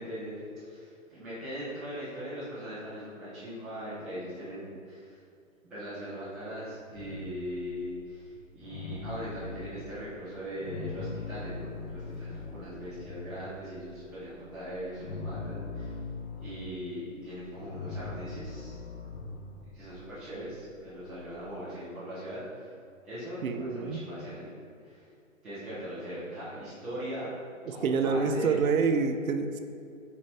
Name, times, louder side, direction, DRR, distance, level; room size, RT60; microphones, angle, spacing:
voice 1, 0.0-5.2 5.6-16.0 16.4-18.8 19.7-22.7 23.0-24.5 24.8-25.0 25.4-27.3 27.7-28.6, equal, ahead, -16 dB, 0.5 m, -40 dB
sound 1, 6.9-10.1 10.5-21.5, left 3 dB, 60° left, 0.7 m, -41 dB
voice 2, 23.4-24.0 27.6-29.6, right 5 dB, 80° right, 7 dB, 0.6 m, -27 dB
5.2 x 4.5 x 4.2 m, 2.5 s
hypercardioid pair, 150°, 41 cm